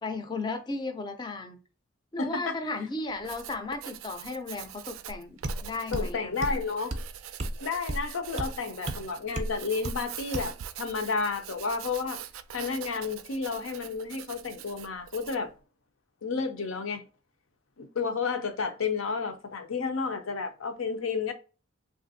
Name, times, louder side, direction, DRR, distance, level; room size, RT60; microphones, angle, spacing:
voice 1, 0.0-1.6 2.1-6.5, left 3 dB, 20° left, 0.4 m, -35 dB
voice 2, 2.2-2.6 5.9-7.0 7.6-12.2 12.5-15.5 16.2-17.0 17.8-21.3, left 4 dB, 85° left, 0.6 m, -31 dB
Writing, 3.1-15.5, right 11 dB, 90° right, 0.3 m, -44 dB
sound 1, 5.1-5.2 5.4-5.6 5.9-6.1 6.4-6.6 6.9-7.1 7.4-7.6 7.9-8.1 8.4-8.5 8.9-9.0 9.4-9.5 9.8-10.0 10.3-10.5, right 1 dB, 35° right, 0.5 m, -32 dB
3.3 x 2.4 x 2.6 m
head